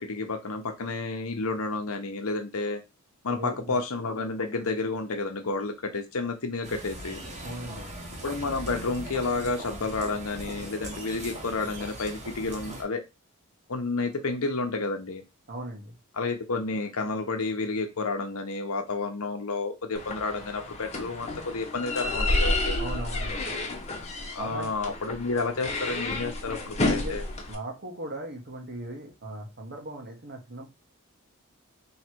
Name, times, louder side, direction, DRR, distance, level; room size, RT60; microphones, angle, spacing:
voice 1, 0.0-2.8 3.2-7.2 8.2-13.0 13.7-15.2 16.1-22.8 24.3-27.2, left 3 dB, 70° left, 5 dB, 0.9 m, -30 dB
voice 2, 3.3-3.8 7.4-7.9 15.5-15.9 22.8-23.5 24.4-24.7 27.0-27.2 27.5-30.7, right 1 dB, 50° right, 2 dB, 1.4 m, -38 dB
sound 1, 6.6-12.8, right 1 dB, 35° right, 1.3 m, -40 dB
sound 2, 19.9-27.5, left 2 dB, 30° left, 1.0 m, -30 dB
3.2 x 3.1 x 4.5 m, 0.24 s
head